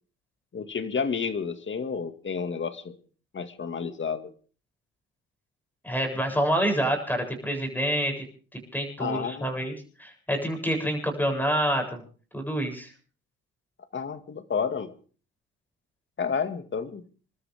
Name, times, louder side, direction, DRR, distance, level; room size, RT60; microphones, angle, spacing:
voice 1, 0.5-3.0 3.3-4.3 9.0-9.5 13.9-14.9 16.2-17.0, left 6 dB, 40° left, 9 dB, 2.2 m, -30 dB
voice 2, 5.8-8.2 8.5-9.7 10.0-12.0 12.3-12.9, equal, 5° left, 3 dB, 7.8 m, -27 dB
29.0 x 12.5 x 3.6 m, 0.39 s
cardioid pair, 90°, 30 cm